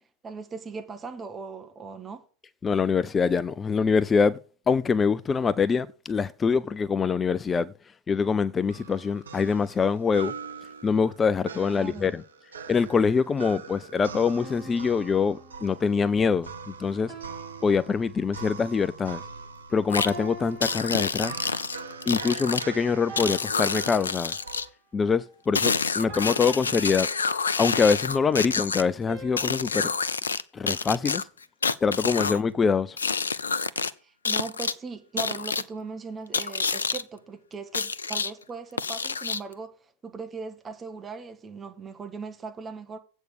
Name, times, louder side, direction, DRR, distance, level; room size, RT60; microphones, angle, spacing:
voice 1, 0.2-2.2 11.5-12.1 32.1-32.4 34.0-39.7 40.0-43.0, right 4 dB, 20° right, 1.5 m, -39 dB
voice 2, 2.6-4.4 4.7-7.7 8.1-10.3 10.8-12.2 12.7-17.1 17.6-19.2 19.7-21.4 22.1-24.3 24.9-27.1 27.6-29.9 30.5-31.3 31.8-33.0, left 5 dB, 20° left, 0.4 m, -24 dB
sound 1, 8.7-24.7, right 5 dB, 70° right, 0.9 m, -42 dB
sound 2, 14.4-16.0 17.1-18.6 20.1-21.8 23.1-24.6 26.1-27.8 29.1-30.1, right 2 dB, 45° right, 5.7 m, -45 dB
sound 3, 19.9-20.1 20.6-22.6 23.2-24.7 25.5-28.8 29.4-30.4 30.7-32.4 33.0-33.9 34.2-34.7 35.2-35.6 36.3-37.0 37.7-38.3 38.8-39.5, left 5 dB, 75° left, 0.5 m, -28 dB
8.2 x 6.2 x 6.6 m
figure-of-eight pair, 90°, 0 cm